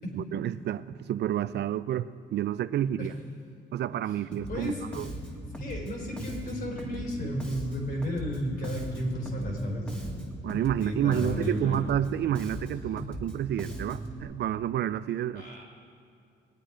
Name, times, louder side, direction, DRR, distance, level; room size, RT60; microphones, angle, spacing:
voice 1, 0.1-3.1 3.7-5.1 10.4-15.5, right 11 dB, 60° right, 15 dB, 0.4 m, -29 dB
Bass guitar, 4.3-14.2, right 1 dB, 5° left, 2.1 m, -39 dB
voice 2, 4.5-4.8 5.6-10.2 10.8-11.8 15.4-15.6, equal, 50° left, 0 dB, 4.2 m, -33 dB
20.5 x 9.0 x 5.0 m, 2.3 s
cardioid pair, 90°, 20 cm